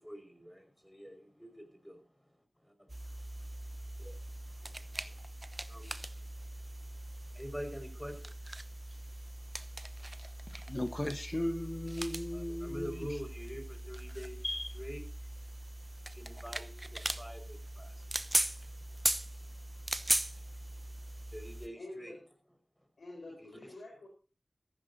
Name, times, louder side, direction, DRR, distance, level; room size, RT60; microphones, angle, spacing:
voice 1, 0.0-2.0 2.6-3.2 3.5-4.3 4.6-5.2 5.7-6.0 7.3-8.3 12.3-15.0 16.0-18.9 19.5-20.1 20.6-22.2 23.4-23.6, equal, ahead, 5.3 m, -47 dB
sound 1, 2.9-21.7, right 1 dB, 30° right, 0.9 m, -39 dB
voice 2, 10.7-13.1 14.4-14.6, left 1 dB, 30° left, 1.3 m, -36 dB
voice 3, 21.8-22.1 23.0-24.1, left 2 dB, 80° left, 4.5 m, -48 dB
15.0 x 14.5 x 2.8 m
cardioid pair, 40°, 0 cm